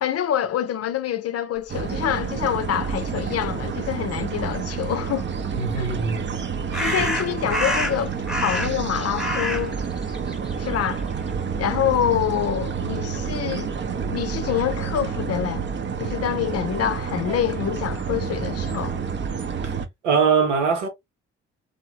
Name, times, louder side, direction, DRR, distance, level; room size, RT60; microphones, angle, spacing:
voice 1, 0.0-5.3 5.8-5.9 6.8-9.8 10.6-11.1 11.6-15.7 16.0-18.9, left 10 dB, 45° left, 0.6 m, -26 dB
sound 1, 1.7-19.9, right 6 dB, 30° right, 0.7 m, -29 dB
voice 2, 5.5-6.2 6.7-7.0 19.6-20.9, right 6 dB, 85° right, 0.8 m, -23 dB
sound 2, 5.6-5.7 6.7-8.9 9.2-11.3, left 1 dB, ahead, 1.0 m, -27 dB
3.5 x 2.2 x 2.8 m
hypercardioid pair, 45°, 35 cm